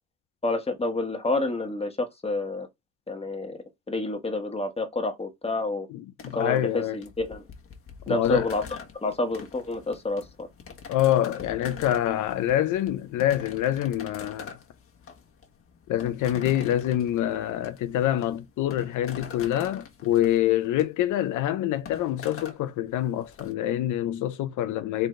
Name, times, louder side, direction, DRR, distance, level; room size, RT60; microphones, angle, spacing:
voice 1, 0.4-2.7 3.1-3.6 3.9-5.9 6.3-7.5 8.1-8.6 9.0-10.5, left 2 dB, 20° left, 1.3 m, -28 dB
voice 2, 5.9-7.0 8.1-8.5 10.9-14.5 15.9-25.1, left 12 dB, 80° left, 0.6 m, -26 dB
sound 1, 6.2-23.5, left 6 dB, 45° left, 1.3 m, -44 dB
3.9 x 3.9 x 3.1 m
cardioid pair, 90°, 30 cm